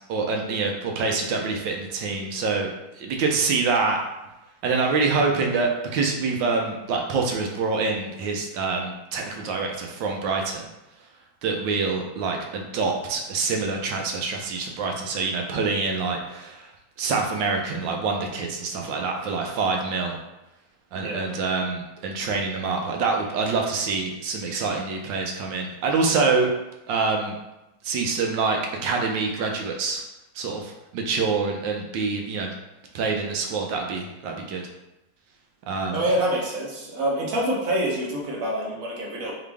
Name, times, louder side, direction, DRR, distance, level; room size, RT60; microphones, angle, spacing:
voice 1, 0.1-2.7 3.0-4.0 4.6-10.7 11.4-16.7 17.0-20.2 20.9-26.5 26.9-27.3 27.8-30.0 30.3-32.5 32.9-34.6 35.7-36.0, right 4 dB, 75° right, 2 dB, 1.3 m, -26 dB
voice 2, 20.9-21.3 35.9-39.3, right 1 dB, 55° right, -3 dB, 1.1 m, -26 dB
3.9 x 3.5 x 3.4 m, 0.94 s
omnidirectional pair, 2.1 m